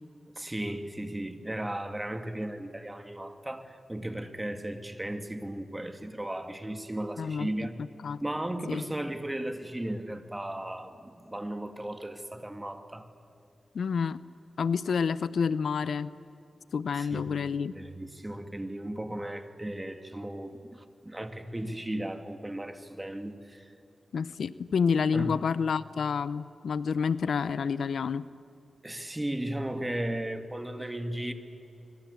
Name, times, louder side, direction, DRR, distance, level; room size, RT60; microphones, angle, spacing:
voice 1, 0.4-7.8 8.2-13.1 16.9-23.7 25.1-25.3 28.8-31.3, right 1 dB, 15° right, 8 dB, 2.6 m, -36 dB
voice 2, 7.2-7.5 8.0-8.2 8.7-8.8 13.7-14.2 14.6-16.1 16.7-17.7 24.1-28.2, left 6 dB, 85° left, 17 dB, 0.7 m, -28 dB
26.0 x 24.5 x 8.4 m, 2.7 s
cardioid pair, 60°, 0 cm